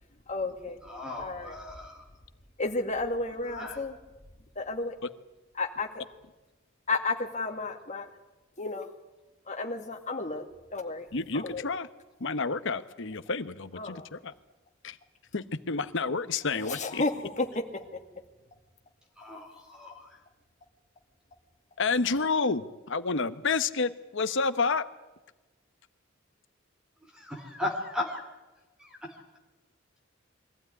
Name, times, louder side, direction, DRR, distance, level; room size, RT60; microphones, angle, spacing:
voice 1, 0.3-0.8 1.2-1.6 2.6-4.0 4.6-5.0 5.6-6.0 6.9-8.1 8.6-8.9 9.5-11.1 11.3-11.6 13.7-14.1 16.5-17.5, left 3 dB, 35° left, 4 dB, 2.2 m, -32 dB
voice 2, 0.9-2.0 3.5-3.8 19.2-20.2 27.1-28.2 28.8-29.2, left 2 dB, 5° right, 3 dB, 2.8 m, -37 dB
voice 3, 11.1-11.9 12.2-14.3 14.8-15.0 15.3-17.0 21.8-24.8, left 4 dB, 65° left, 12 dB, 1.1 m, -29 dB
23.0 x 15.5 x 9.8 m, 1.1 s
head